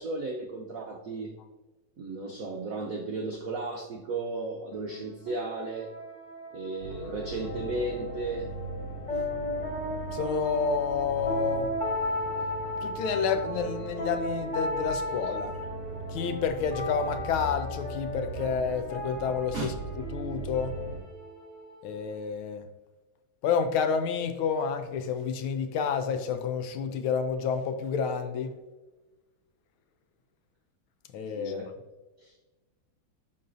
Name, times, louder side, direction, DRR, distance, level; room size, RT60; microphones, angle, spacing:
voice 1, 0.0-1.3 2.0-5.9 6.5-8.5 19.5-19.7 31.3-31.7 32.2-32.3, right 3 dB, 75° right, 1 dB, 0.7 m, -34 dB
sound 1, 4.7-22.2, left 1 dB, 25° left, 0.8 m, -36 dB
sound 2, 6.8-21.0, right 2 dB, 55° left, 2.8 m, -40 dB
voice 2, 10.1-11.7 12.8-15.5 16.1-19.7 20.1-20.8 21.8-22.6 23.4-28.5 31.1-31.7, left 6 dB, 75° left, 8 dB, 1.4 m, -29 dB
11.0 x 3.9 x 2.6 m, 1.2 s
omnidirectional pair, 2.4 m